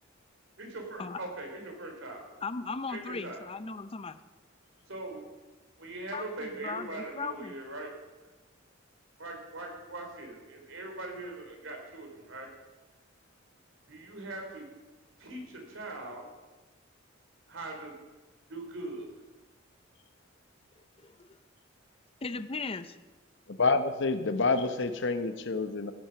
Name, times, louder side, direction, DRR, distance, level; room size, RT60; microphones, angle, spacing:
voice 1, 0.6-2.2 2.9-3.4 4.9-5.2 5.8-7.9 9.2-12.5 13.9-14.7 15.2-16.3 17.5-17.9 18.5-19.1, right 2 dB, 75° right, 2 dB, 3.4 m, -41 dB
voice 2, 2.4-4.2 6.1-7.5 21.0-21.4 22.2-22.9, left 4 dB, 30° left, 12 dB, 0.6 m, -37 dB
voice 3, 23.5-25.9, left 3 dB, 65° left, 9 dB, 1.0 m, -28 dB
15.5 x 9.1 x 5.8 m, 1.2 s
head